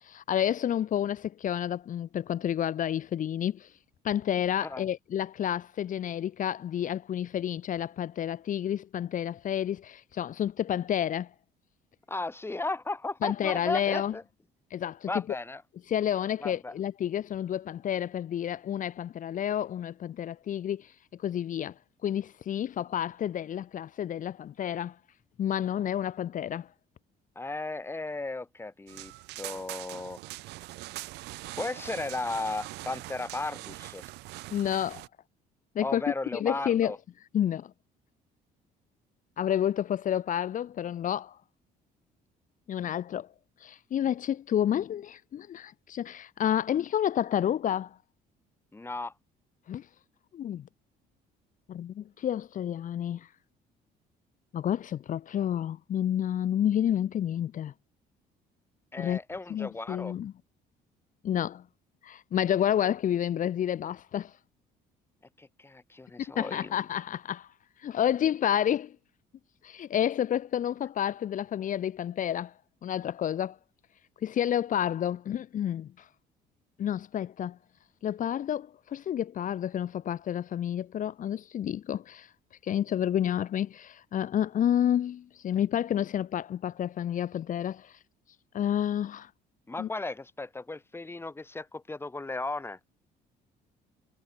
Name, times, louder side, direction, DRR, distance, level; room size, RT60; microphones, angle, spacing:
voice 1, 0.1-3.7 4.0-11.3 13.2-14.1 14.7-15.1 15.9-20.9 21.2-21.7 22.0-24.9 25.4-26.7 34.5-35.1 35.7-36.0 36.3-36.9 37.3-37.7 39.4-41.4 42.7-43.3 43.6-48.0 49.7-49.8 50.3-50.6 51.7-53.3 54.5-57.7 59.0-59.2 59.5-60.3 61.2-61.6 62.0-64.3 66.3-67.5 67.8-68.9 69.6-72.5 72.8-73.6 74.2-75.9 76.8-77.6 78.0-82.3 82.6-87.9 88.5-89.3 89.8-89.9, left 10 dB, 50° left, 1.3 m, -30 dB
voice 2, 12.1-14.2 15.1-15.6 16.4-16.7 27.4-29.1 29.4-30.2 31.6-34.0 35.8-37.0 48.7-49.1 58.9-60.1 65.4-66.7 89.7-92.8, left 2 dB, 15° left, 2.6 m, -35 dB
sound 1, 28.9-35.1, right 20 dB, 90° right, 2.6 m, -42 dB
cardioid pair, 110°, 17 cm